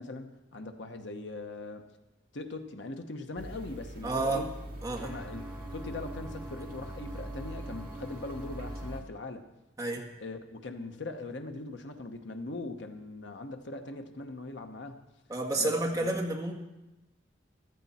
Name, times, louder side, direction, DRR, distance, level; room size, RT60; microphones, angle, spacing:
voice 1, 0.0-1.8 2.3-4.5 5.0-9.4 10.2-15.0 15.6-16.1, left 2 dB, 70° left, 6 dB, 1.0 m, -40 dB
sound 1, 3.4-9.0, right 1 dB, 50° right, 1.7 m, -43 dB
voice 2, 4.0-4.4 4.8-5.1 9.8-10.0 15.3-16.5, right 2 dB, 15° right, 0 dB, 1.7 m, -30 dB
sound 2, 4.9-9.0, right 2 dB, ahead, 1.3 m, -45 dB
15.0 x 13.5 x 4.2 m, 1.0 s
head